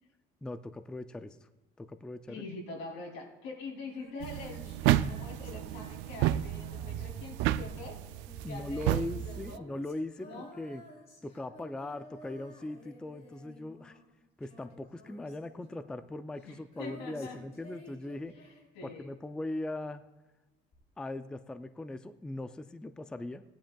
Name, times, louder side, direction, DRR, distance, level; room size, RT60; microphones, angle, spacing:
voice 1, 0.4-1.5 1.8-2.4 8.4-10.8 11.2-14.0 14.4-18.3 18.8-20.0 21.0-23.4, left 2 dB, 5° left, 10 dB, 0.3 m, -40 dB
voice 2, 2.3-8.0 8.5-9.6 10.2-10.5 16.4-17.4 18.4-18.5 18.7-19.1, left 3 dB, 85° left, 0 dB, 2.9 m, -44 dB
Female singing, 3.8-19.2 20.7-20.8, left 1 dB, 35° left, 3.7 m, -55 dB
sound 1, 4.2-9.6, right 13 dB, 85° right, 0.4 m, -31 dB
18.0 x 10.5 x 2.3 m, 1.1 s
cardioid pair, 135°, 18 cm